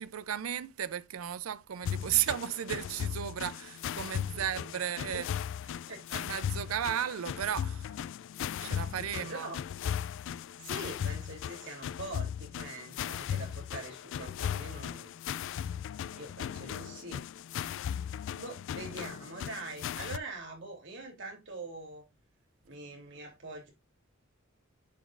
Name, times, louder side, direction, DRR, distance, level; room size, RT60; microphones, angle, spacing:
voice 1, 0.0-5.3 6.2-7.9 8.6-9.5, right 10 dB, 85° right, 0.4 m, -34 dB
sound 1, 1.8-20.2, left 9 dB, 65° left, 0.3 m, -37 dB
voice 2, 4.3-5.3 5.9-6.3 8.9-9.6 10.6-15.1 16.2-17.3 18.4-22.0 22.6-23.7, right 2 dB, 65° right, 3.1 m, -44 dB
9.8 x 5.1 x 2.5 m
head